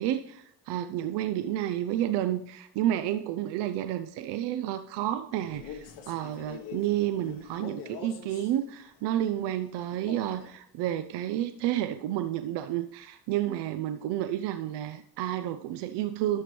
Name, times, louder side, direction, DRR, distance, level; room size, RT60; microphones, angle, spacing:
voice 1, 0.0-16.4, right 12 dB, 85° right, 10 dB, 0.6 m, -30 dB
Male speech man speaking, 5.4-8.6 9.9-10.6, left 6 dB, 75° left, 1.4 m, -44 dB
12.0 x 5.9 x 3.3 m, 0.72 s
cardioid pair, 125°, 40 cm